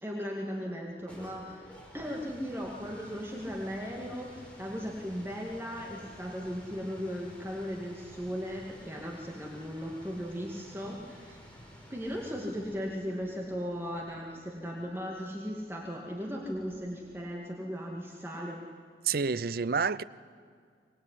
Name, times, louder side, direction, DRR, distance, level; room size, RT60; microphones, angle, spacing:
voice 1, 0.0-11.4 11.9-18.7, equal, 15° right, 2.3 m, -37 dB
sound 1, 0.8-17.5, equal, 5° left, 4.5 m, -53 dB
voice 2, 19.0-20.0, right 5 dB, 55° right, 0.6 m, -28 dB
25.0 x 20.5 x 9.9 m
head